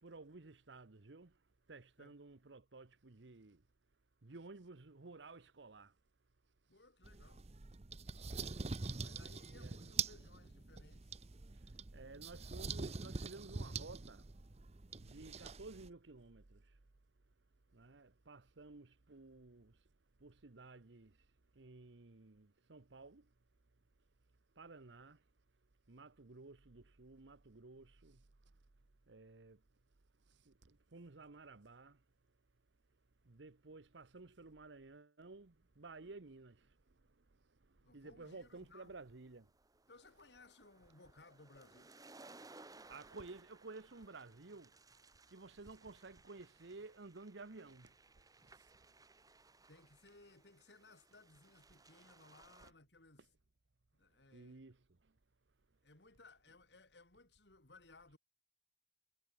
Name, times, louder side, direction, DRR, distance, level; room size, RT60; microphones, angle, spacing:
voice 1, 0.0-3.6 4.2-6.0 6.7-6.8 8.3-8.6 9.4-10.1 11.5-14.3 15.0-16.8 17.7-19.9 20.2-23.3 24.5-25.2 25.9-28.5 29.1-29.6 30.3-32.0 33.2-39.5 40.1-40.4 42.9-49.2 52.6-52.7 53.2-53.3 54.3-55.2, right 3 dB, 90° right, 1.1 m, -55 dB
voice 2, 6.7-7.5 9.0-11.2 37.8-38.9 39.9-41.9 49.7-53.3 53.9-54.7 55.8-58.2, left 3 dB, 70° left, 2.8 m, -62 dB
sound 1, 7.0-15.9, right 5 dB, 35° right, 0.8 m, -44 dB
sound 2, 38.5-52.7, right 3 dB, 20° right, 2.1 m, -62 dB
head